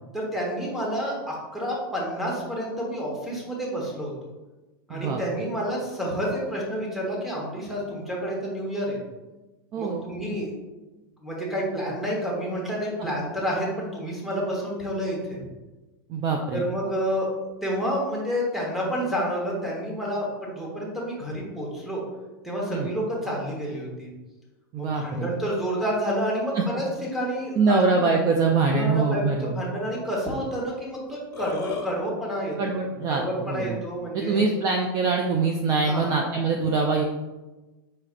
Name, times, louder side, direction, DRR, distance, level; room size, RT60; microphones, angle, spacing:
voice 1, 0.1-4.1 4.9-9.0 9.8-10.5 11.2-15.4 16.5-17.3 17.6-22.0 22.4-24.1 24.8-26.9 27.1-28.1 28.7-32.6 33.1-34.4 35.9-36.1, equal, ahead, -3 dB, 1.1 m, -29 dB
voice 2, 9.7-10.0 16.1-16.6 22.7-22.9 24.7-25.3 26.5-26.6 27.6-29.7 32.6-33.8 34.1-37.0, right 4 dB, 30° right, 2 dB, 0.4 m, -24 dB
Burping eructation, 31.1-31.9, left 4 dB, 30° left, 1.1 m, -32 dB
4.8 x 4.2 x 2.4 m, 1.1 s
supercardioid pair, 150°, 12 cm